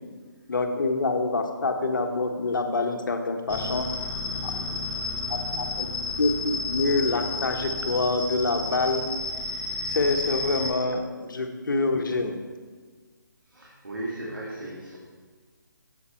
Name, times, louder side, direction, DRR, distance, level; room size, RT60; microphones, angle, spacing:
voice 1, 0.5-3.9 4.4-4.5 5.3-5.9 6.2-9.0 9.8-12.4, left 3 dB, 70° left, 5 dB, 1.3 m, -26 dB
sound 1, 3.5-10.7, left 3 dB, 15° left, 1.1 m, -31 dB
voice 2, 13.5-15.0, right 1 dB, 85° right, -5 dB, 2.3 m, -36 dB
8.7 x 8.3 x 4.4 m, 1.5 s
figure-of-eight pair, 150°, 11 cm